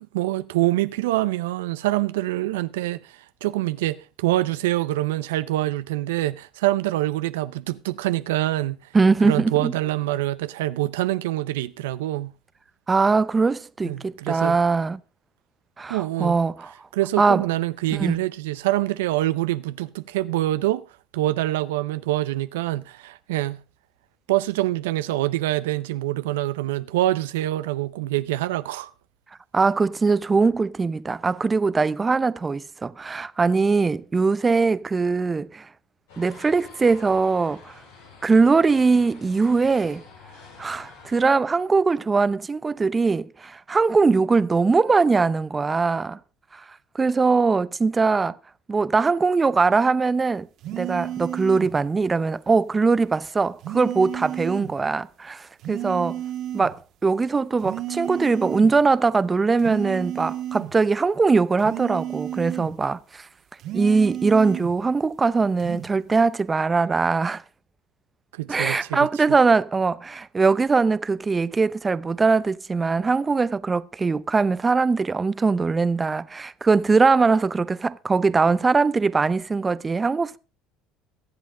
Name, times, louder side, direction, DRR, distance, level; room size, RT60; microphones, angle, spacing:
voice 1, 0.1-8.8 9.2-12.3 13.8-14.6 15.9-16.3 16.9-20.8 21.1-23.6 24.3-28.9 68.3-69.1, right 16 dB, 90° right, 0.6 m, -25 dB
voice 2, 8.9-9.7 12.9-15.0 15.8-16.7 17.2-17.4 17.9-18.2 29.5-35.7 36.2-37.7 38.2-40.0 40.6-46.2 46.5-46.6 46.9-48.3 48.7-50.5 50.7-56.2 56.5-63.3 63.7-67.4 68.5-80.4, right 4 dB, 25° right, 0.7 m, -21 dB
sound 1, 36.1-41.2, left 5 dB, 90° left, 6.5 m, -48 dB
sound 2, 50.6-51.8 53.6-54.8 55.6-56.8 57.6-58.8 59.6-60.8 61.6-62.8 63.6-64.8 65.6-65.9, right 12 dB, 60° right, 1.8 m, -32 dB
23.0 x 8.0 x 3.7 m
supercardioid pair, 80°, 0 cm